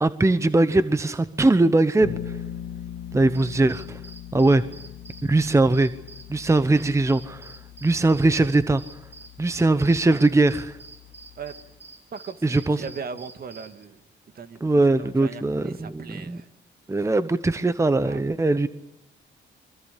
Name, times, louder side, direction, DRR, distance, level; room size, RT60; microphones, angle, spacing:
voice 1, 0.0-2.4 3.1-4.0 4.3-4.6 5.2-5.9 6.3-7.5 7.8-8.8 9.4-10.8 12.4-12.8 14.6-16.4 16.9-18.7, right 2 dB, 15° right, 13 dB, 1.0 m, -21 dB
Bass guitar, 2.0-11.8, left 10 dB, 70° left, 1.8 m, -41 dB
sound 1, 3.2-13.8, right 4 dB, 35° right, 4.9 m, -47 dB
voice 2, 12.1-14.0 14.3-16.5 18.1-18.2, right 6 dB, 50° right, 10 dB, 2.0 m, -38 dB
24.5 x 24.0 x 8.4 m, 0.83 s
cardioid pair, 90°, 20 cm